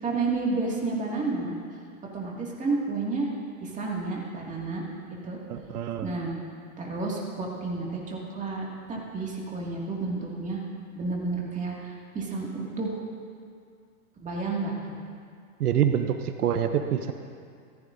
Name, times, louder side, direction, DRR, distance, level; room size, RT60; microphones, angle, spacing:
voice 1, 0.0-1.5 2.1-3.3 3.6-4.8 5.2-5.4 6.0-6.3 6.8-10.6 11.0-13.0 14.2-14.9, right 3 dB, 15° right, -3 dB, 2.2 m, -31 dB
voice 2, 5.5-6.1 15.6-17.1, right 9 dB, 90° right, 8 dB, 0.8 m, -26 dB
14.5 x 14.5 x 2.6 m, 2.2 s
hypercardioid pair, 125°, 44 cm